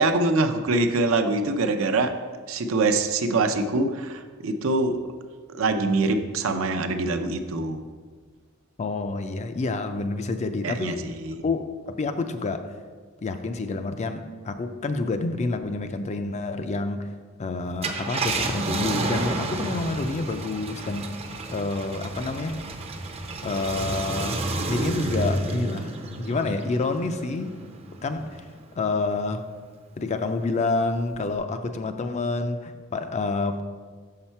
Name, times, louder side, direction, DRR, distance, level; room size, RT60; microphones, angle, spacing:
voice 1, 0.0-2.2 2.5-5.0 5.6-7.8 10.6-11.4, right 3 dB, 75° right, 6 dB, 0.5 m, -24 dB
voice 2, 8.8-11.0 11.4-12.7 13.2-17.1 17.4-21.1 21.5-22.6 23.4-25.9 26.2-27.6 28.0-28.5 28.8-29.4 30.0-33.6, left 3 dB, 35° left, 9 dB, 0.4 m, -28 dB
Car, 17.7-28.5 29.0-29.1 31.1-31.4, right 2 dB, 30° right, 0.5 m, -31 dB
6.3 x 5.8 x 4.4 m, 1.6 s
head